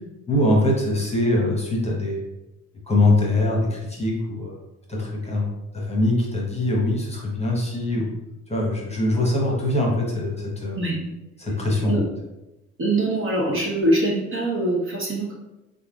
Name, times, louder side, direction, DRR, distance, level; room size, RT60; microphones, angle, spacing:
voice 1, 0.3-2.2 2.9-4.6 4.9-8.1 8.5-10.8 11.4-12.0, left 1 dB, 15° left, -2 dB, 1.0 m, -23 dB
voice 2, 12.8-15.3, right 1 dB, 30° right, -3 dB, 0.9 m, -23 dB
3.9 x 3.4 x 2.4 m, 1.0 s
figure-of-eight pair, 50°, 42 cm